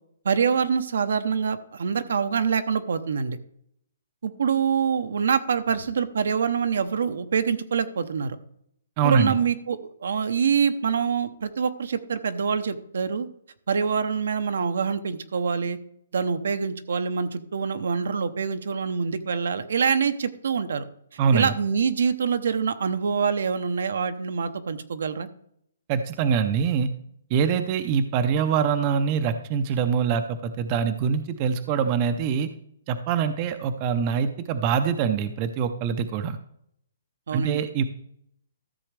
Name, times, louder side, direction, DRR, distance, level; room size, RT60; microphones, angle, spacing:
voice 1, 0.2-3.4 4.2-8.4 9.0-13.3 13.7-15.8 16.1-20.8 21.3-25.3 37.3-37.6, right 6 dB, 75° right, 11 dB, 0.8 m, -25 dB
voice 2, 9.0-9.3 21.2-21.5 25.9-26.9 27.3-32.5 32.9-36.4 37.3-37.8, right 6 dB, 30° right, 10 dB, 0.6 m, -24 dB
13.5 x 7.0 x 3.3 m, 0.70 s
hypercardioid pair, 160°, 0 cm